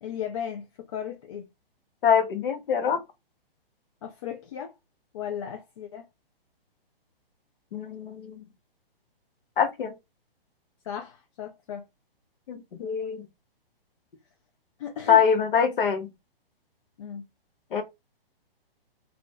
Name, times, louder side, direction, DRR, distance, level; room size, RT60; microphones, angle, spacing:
voice 1, 0.0-1.4 4.0-4.7 5.1-6.1 10.8-11.8 14.8-15.2 17.0-17.2, left 8 dB, 35° left, 0.4 m, -36 dB
voice 2, 2.0-3.0 7.7-8.5 9.6-9.9 12.5-13.3 15.1-16.1 17.7-17.8, left 7 dB, 65° left, 0.9 m, -24 dB
2.4 x 2.0 x 3.3 m
hypercardioid pair, 140°, 30 cm